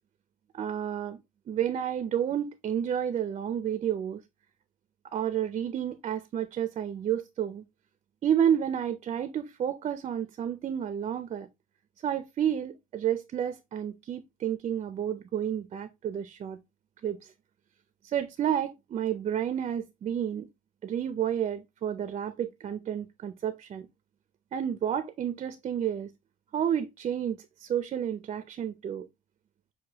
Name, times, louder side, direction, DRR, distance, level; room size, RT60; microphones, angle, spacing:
voice 1, 0.5-1.2 1.5-4.2 5.1-7.6 8.2-11.5 12.0-16.6 17.0-17.3 18.0-20.5 20.8-23.9 24.5-26.1 26.5-29.1, right 9 dB, 40° right, 0.4 m, -30 dB
6.4 x 2.2 x 2.8 m
cardioid pair, 110°, 17 cm